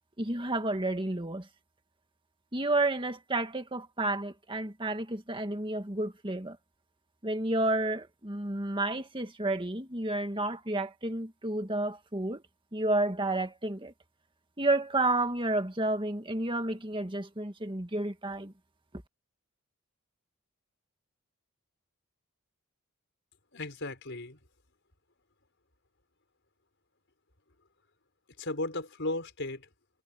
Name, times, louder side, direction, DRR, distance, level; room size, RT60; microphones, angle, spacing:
voice 1, 0.2-1.5 2.5-6.6 7.2-12.4 12.7-13.9 14.6-18.5, right 2 dB, 20° right, 1.9 m, -31 dB
voice 2, 23.5-24.4 28.4-29.7, left 2 dB, 55° left, 5.2 m, -35 dB
head